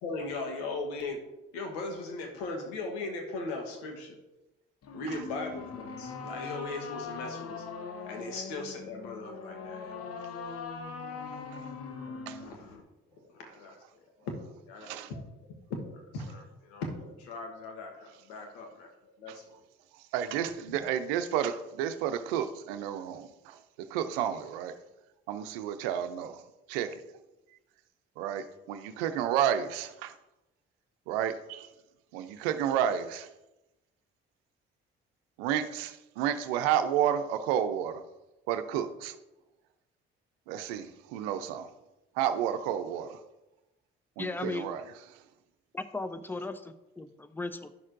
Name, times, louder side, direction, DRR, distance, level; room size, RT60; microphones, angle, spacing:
voice 1, 0.0-1.2 1.5-4.2 4.9-7.6 8.1-10.1 12.0-19.6 20.7-20.8, left 3 dB, 85° left, 1.2 m, -39 dB
sound 1, 4.8-12.8, left 5 dB, 55° left, 0.9 m, -41 dB
voice 2, 20.1-24.7 25.3-26.4 26.7-27.0 28.2-30.1 31.1-31.7 32.1-33.3 35.4-38.0 38.5-39.1 40.5-41.7 42.2-43.2 44.2-44.8, right 9 dB, 85° right, 0.6 m, -31 dB
voice 3, 44.2-44.8 45.7-47.7, left 2 dB, 5° left, 0.6 m, -36 dB
9.9 x 6.3 x 2.5 m
hypercardioid pair, 45°, 29 cm